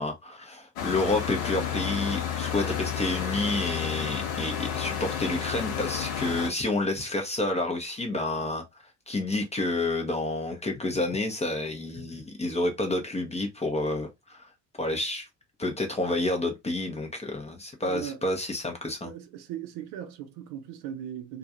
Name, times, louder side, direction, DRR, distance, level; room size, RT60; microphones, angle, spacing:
voice 1, 0.0-8.6 9.1-14.5 14.8-15.3 15.6-19.1, left 2 dB, 15° left, 0.6 m, -29 dB
sound 1, 0.8-6.5, left 8 dB, 60° left, 0.9 m, -31 dB
voice 2, 17.8-18.2 19.0-21.4, right 10 dB, 55° right, 0.7 m, -38 dB
2.4 x 2.3 x 2.6 m
figure-of-eight pair, 60°, 48 cm